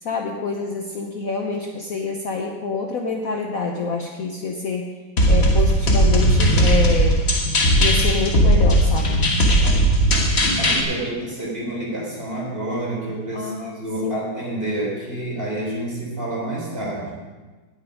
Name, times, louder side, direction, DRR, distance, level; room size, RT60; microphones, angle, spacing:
voice 1, 0.0-5.0 5.3-7.2 7.8-9.2 13.3-13.7 14.0-14.2, left 4 dB, 55° left, 2 dB, 1.2 m, -27 dB
sound 1, 5.2-10.8, right 1 dB, 35° left, 1.5 m, -17 dB
voice 2, 10.6-17.1, right 1 dB, 30° right, -4 dB, 4.0 m, -28 dB
18.0 x 7.0 x 5.2 m, 1.3 s
omnidirectional pair, 2.1 m